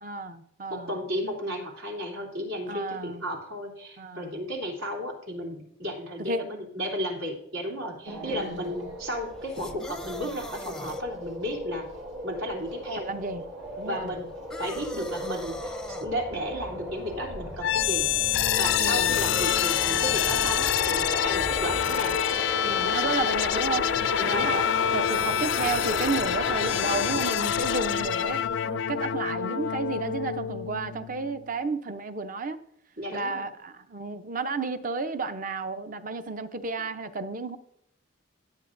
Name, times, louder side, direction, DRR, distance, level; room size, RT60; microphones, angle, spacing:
voice 1, 0.0-1.0 2.7-3.2 4.0-4.4 6.2-6.5 8.2-8.7 13.0-13.4 13.8-14.1 18.8-19.2 22.6-32.6 33.1-37.6, right 3 dB, 40° right, 10 dB, 0.6 m, -32 dB
voice 2, 0.7-11.9 12.2-13.1 13.8-14.3 14.6-22.2 24.2-24.7 33.0-33.5, equal, 85° right, -1 dB, 3.2 m, -34 dB
sound 1, 8.1-27.3, right 1 dB, 60° right, 2.1 m, -37 dB
sound 2, 9.5-11.0 14.5-16.1 19.3-20.4, left 1 dB, 5° left, 0.6 m, -40 dB
sound 3, 17.6-31.5, left 9 dB, 60° left, 0.4 m, -26 dB
18.0 x 7.9 x 2.6 m, 0.75 s
head